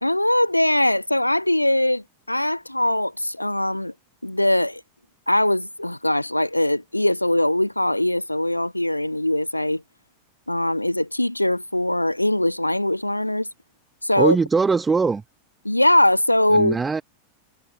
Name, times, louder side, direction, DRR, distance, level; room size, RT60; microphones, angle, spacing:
voice 1, 0.0-3.9 4.2-4.8 5.3-9.8 10.5-13.5 14.0-14.4 15.6-16.8, left 1 dB, 85° left, 1.1 m, -21 dB
voice 2, 14.2-15.2 16.5-17.0, right 4 dB, 15° right, 0.8 m, -21 dB
figure-of-eight pair, 90°, 0 cm